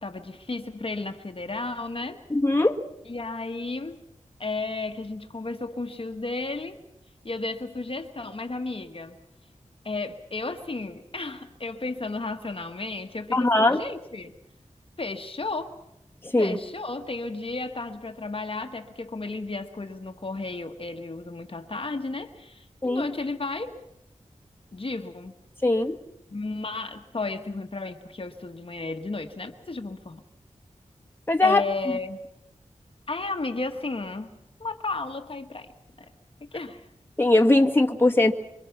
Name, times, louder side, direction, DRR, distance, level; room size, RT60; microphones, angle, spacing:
voice 1, 0.0-2.2 3.0-4.0 4.4-6.8 7.2-9.2 9.8-14.3 15.0-15.7 16.4-23.8 24.7-25.3 26.3-30.2 31.4-32.2 33.1-34.3 34.6-35.7 36.0-36.1 36.4-36.9, left 3 dB, 45° left, 5 dB, 1.5 m, -33 dB
voice 2, 2.3-2.8 13.3-13.8 16.3-16.6 22.8-23.0 25.6-26.0 31.3-31.6 37.2-38.3, left 2 dB, 15° left, 2 dB, 1.8 m, -20 dB
26.5 x 24.0 x 6.0 m, 0.81 s
wide cardioid pair, 75°, 13 cm